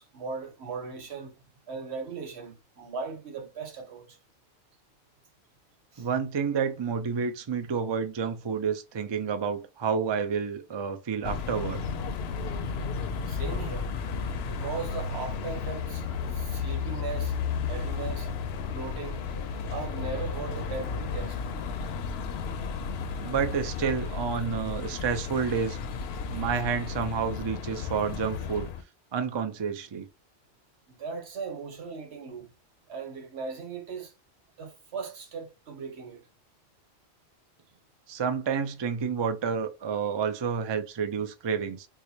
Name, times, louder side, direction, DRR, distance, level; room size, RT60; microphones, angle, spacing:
voice 1, 0.0-1.3 1.7-4.2 5.9-6.1 13.3-13.9 14.4-17.4 17.6-18.4 18.6-19.3 19.7-21.4 30.9-32.5 32.9-34.1 34.6-36.3, right 5 dB, 85° right, 1.2 m, -38 dB
voice 2, 6.0-11.9 23.2-25.8 26.3-28.7 29.1-30.1 38.1-41.9, right 6 dB, 40° right, 0.4 m, -29 dB
sound 1, 11.2-28.8, left 5 dB, 75° left, 0.8 m, -33 dB
4.7 x 2.0 x 2.7 m
omnidirectional pair, 1.1 m